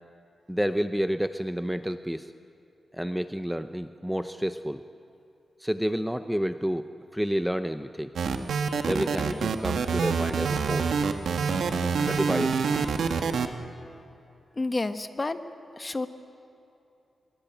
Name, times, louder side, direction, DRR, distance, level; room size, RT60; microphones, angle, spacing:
voice 1, 0.5-2.3 2.9-4.8 5.6-8.1 8.8-10.9 12.1-12.6, equal, 5° right, 9 dB, 0.7 m, -29 dB
sound 1, 8.2-13.5, right 5 dB, 80° right, 1.6 m, -26 dB
voice 2, 14.5-15.4 15.8-16.1, left 2 dB, 30° left, 9 dB, 1.3 m, -29 dB
26.0 x 22.5 x 9.0 m, 2.8 s
cardioid pair, 95°, 0 cm